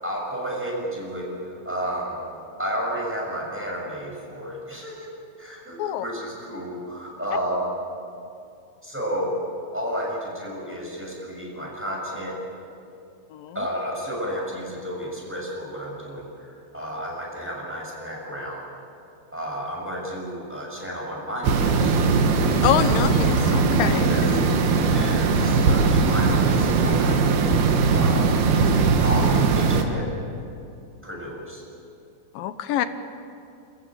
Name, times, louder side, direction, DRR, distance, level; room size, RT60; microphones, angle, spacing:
voice 1, 0.0-2.2 2.6-5.1 5.4-7.7 8.8-9.3 9.7-12.4 13.5-18.6 19.3-22.0 24.0-24.4 24.9-27.2 27.9-28.3 29.0-30.0 31.0-31.6, equal, 5° right, -3 dB, 6.2 m, -31 dB
sound 1, 21.4-29.8, right 4 dB, 75° right, 3.3 m, -20 dB
voice 2, 22.6-24.1 32.4-32.9, left 11 dB, 75° left, 11 dB, 2.4 m, -25 dB
29.5 x 15.0 x 8.9 m, 2.6 s
omnidirectional pair, 4.6 m